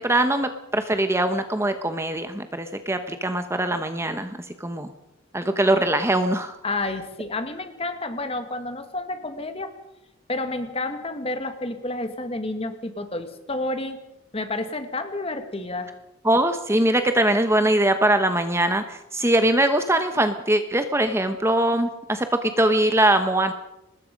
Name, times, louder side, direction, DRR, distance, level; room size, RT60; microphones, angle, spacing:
voice 1, 0.0-4.9 5.3-6.5 16.2-23.5, right 1 dB, 10° right, 8 dB, 1.0 m, -22 dB
voice 2, 6.6-9.7 10.3-14.0 14.3-15.9, left 2 dB, 30° left, 8 dB, 1.9 m, -30 dB
24.5 x 20.0 x 5.3 m, 0.91 s
head